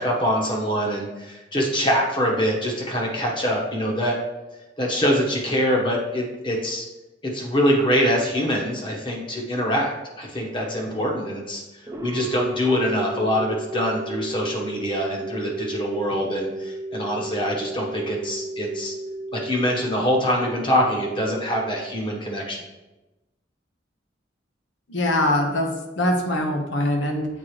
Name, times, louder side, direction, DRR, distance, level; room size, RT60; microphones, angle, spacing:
voice 1, 0.0-4.2 4.8-6.8 7.2-18.9 19.3-22.6, equal, 30° left, -1 dB, 1.1 m, -24 dB
sound 1, 11.9-22.6, right 2 dB, 20° right, 0.5 m, -34 dB
voice 2, 24.9-25.7 26.0-27.3, left 1 dB, 80° left, 2 dB, 1.0 m, -22 dB
8.1 x 3.8 x 3.1 m, 1.0 s
head